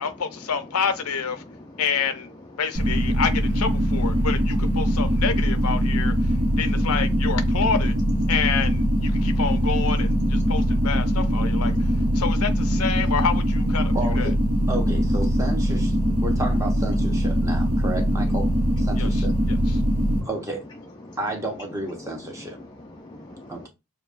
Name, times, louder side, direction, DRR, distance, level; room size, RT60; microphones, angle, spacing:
voice 1, 0.0-1.4 1.8-2.3 2.6-7.9 8.3-14.3 19.0-19.8, left 6 dB, 80° left, 0.6 m, -28 dB
voice 2, 1.5-1.8 6.3-6.6 9.1-9.4 11.7-12.2 16.1-16.2 17.8-17.9 19.0-19.1 19.8-20.3 21.0-21.2 22.0-22.1 22.6-23.7, left 1 dB, 20° left, 0.4 m, -45 dB
sound 1, 2.7-20.2, equal, 50° right, 1.5 m, -22 dB
voice 3, 13.9-14.3 14.7-18.5 18.8-19.3 20.2-20.6 21.2-22.6 23.5-23.7, right 2 dB, 15° right, 0.9 m, -32 dB
6.6 x 2.2 x 2.5 m
head